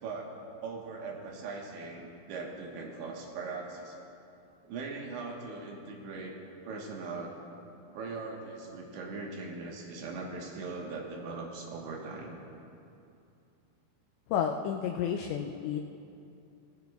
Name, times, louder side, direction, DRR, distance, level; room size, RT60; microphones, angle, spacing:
voice 1, 0.0-4.0 4.6-6.3 6.6-7.4 7.9-12.4, right 3 dB, 70° right, -1 dB, 3.3 m, -40 dB
voice 2, 14.3-15.8, left 8 dB, 90° left, 4 dB, 2.5 m, -31 dB
21.0 x 15.0 x 2.3 m, 2.6 s
omnidirectional pair, 5.7 m